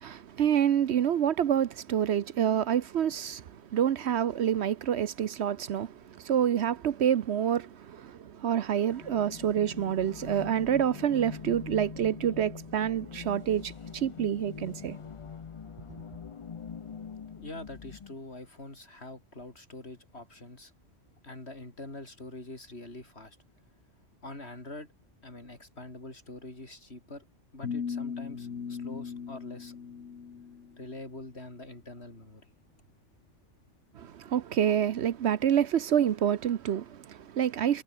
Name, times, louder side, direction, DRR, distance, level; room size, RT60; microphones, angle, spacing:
voice 1, 0.0-15.0 34.0-37.8, right 9 dB, 65° right, 1.0 m, -27 dB
sound 1, 8.9-18.1, left 6 dB, 45° left, 0.4 m, -43 dB
voice 2, 17.3-20.7 21.2-23.4 24.2-24.9 25.2-27.3 27.5-29.8 30.8-32.4, left 2 dB, 60° left, 5.4 m, -44 dB
sound 2, 27.6-30.8, left 6 dB, 75° left, 1.8 m, -38 dB
omnidirectional pair, 1.2 m